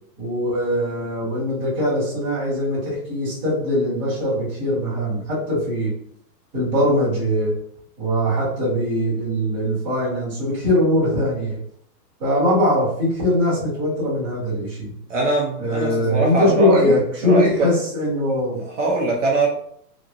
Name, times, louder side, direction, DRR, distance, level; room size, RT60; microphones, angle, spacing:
voice 1, 0.2-6.0 6.5-7.6 8.0-11.6 12.2-15.0 15.6-18.6, left 1 dB, 10° right, -12 dB, 0.9 m, -21 dB
voice 2, 15.1-16.9 17.2-17.7 18.7-19.5, right 2 dB, 50° right, -2 dB, 0.6 m, -22 dB
2.9 x 2.6 x 2.4 m, 0.67 s
hypercardioid pair, 175°, 49 cm